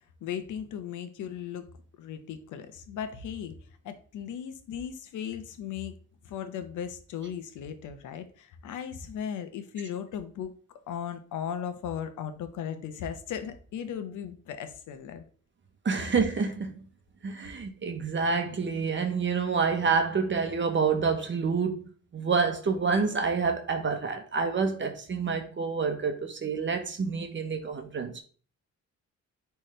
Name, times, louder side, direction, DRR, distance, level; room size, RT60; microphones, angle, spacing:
voice 1, 0.2-1.7 2.0-3.5 3.8-5.9 6.2-10.5 10.9-15.2, left 8 dB, 80° left, 1.1 m, -37 dB
voice 2, 15.8-16.7 17.2-28.2, right 5 dB, 40° right, 1.2 m, -28 dB
10.0 x 3.5 x 3.3 m
cardioid pair, 90°, 30 cm